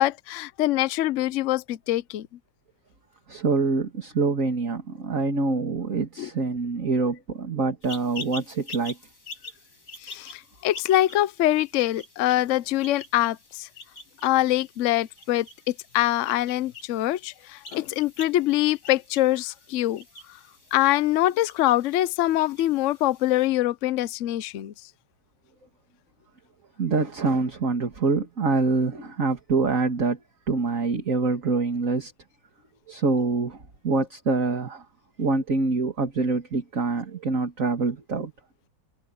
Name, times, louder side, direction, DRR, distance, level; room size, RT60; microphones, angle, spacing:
voice 1, 0.0-2.3 6.2-6.3 10.0-13.7 14.2-20.0 20.7-24.7, left 14 dB, 85° left, 0.6 m, -24 dB
voice 2, 3.3-9.0 26.8-30.2 30.5-32.1 32.9-33.6 33.8-34.8 35.2-38.3, right 3 dB, 45° right, 2.5 m, -25 dB
sound 1, 7.8-23.5, left 3 dB, 60° left, 7.5 m, -45 dB
omnidirectional pair, 2.1 m